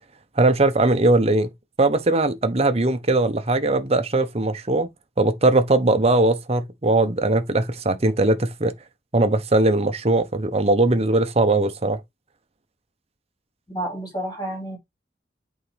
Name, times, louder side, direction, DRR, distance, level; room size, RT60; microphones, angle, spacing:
voice 1, 0.4-1.5 1.8-4.9 5.2-8.7 9.1-12.0, right 2 dB, 35° right, 0.9 m, -20 dB
voice 2, 13.7-14.8, right 1 dB, 25° left, 4.1 m, -30 dB
8.4 x 4.4 x 3.4 m
head